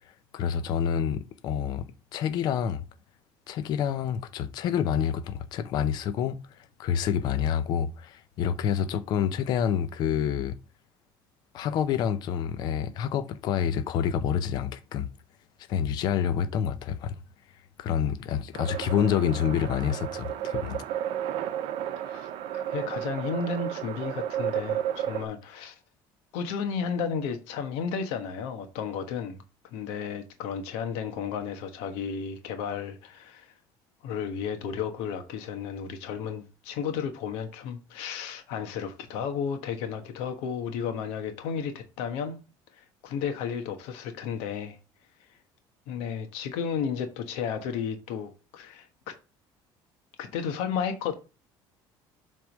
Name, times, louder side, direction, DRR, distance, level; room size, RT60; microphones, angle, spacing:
voice 1, 0.3-1.9 2.1-2.8 3.5-6.4 6.8-10.6 11.5-15.1 15.7-17.2 17.8-20.8, left 8 dB, 45° left, 0.7 m, -27 dB
sound 1, 18.5-25.3, right 10 dB, 60° right, 0.8 m, -32 dB
voice 2, 22.0-25.8 26.3-29.4 29.7-33.5 34.0-42.4 42.7-44.8 45.9-49.2 50.2-51.1, left 6 dB, 85° left, 1.2 m, -33 dB
7.6 x 3.6 x 5.2 m
cardioid pair, 170°, 10 cm